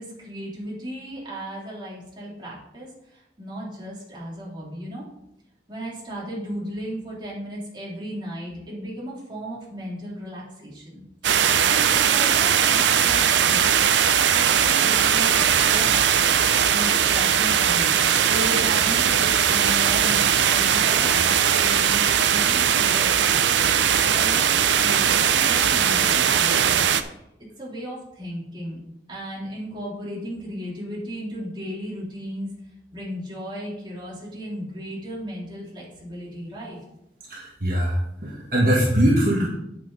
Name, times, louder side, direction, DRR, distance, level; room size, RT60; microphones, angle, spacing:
voice 1, 0.0-5.0 5.7-11.0 11.3-13.7 14.3-16.0 16.7-18.0 18.3-23.1 24.0-27.2 27.6-28.8 29.1-32.5 32.9-36.8, equal, 25° right, -6 dB, 3.4 m, -35 dB
sound 1, 11.2-27.0, right 8 dB, 90° right, 0.6 m, -19 dB
voice 2, 37.3-38.0 38.2-39.5, right 1 dB, 50° right, -3 dB, 1.6 m, -21 dB
8.7 x 8.3 x 4.1 m, 0.81 s
head